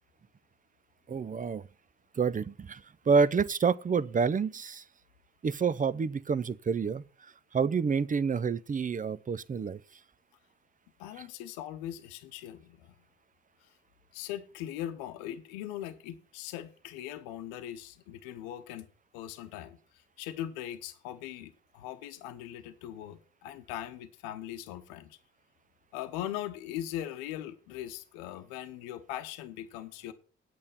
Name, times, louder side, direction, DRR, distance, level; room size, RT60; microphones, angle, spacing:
voice 1, 1.1-1.6 2.2-2.8 3.1-4.8 5.4-9.8, right 5 dB, 25° right, 0.6 m, -28 dB
voice 2, 11.0-12.9 13.6-13.7 14.1-18.9 19.1-25.2 25.9-30.1, left 12 dB, 75° left, 1.0 m, -40 dB
8.6 x 8.4 x 5.7 m
figure-of-eight pair, 45°, 33 cm